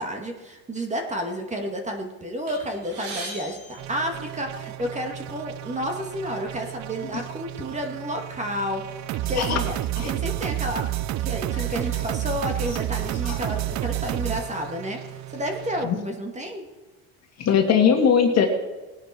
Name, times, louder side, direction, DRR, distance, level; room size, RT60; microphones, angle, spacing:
voice 1, 0.0-8.8 9.3-10.9 11.2-16.7, equal, 15° right, 3 dB, 2.1 m, -31 dB
sound 1, 2.5-4.8 5.6-5.8 6.1-6.3 7.1-7.3 7.8-8.9, right 2 dB, 75° right, 4.9 m, -40 dB
sound 2, 3.8-15.8, right 14 dB, 45° right, 0.6 m, -31 dB
voice 2, 17.4-18.5, left 7 dB, 40° left, 4 dB, 2.2 m, -20 dB
19.5 x 9.9 x 4.5 m, 1.2 s
supercardioid pair, 120°, 41 cm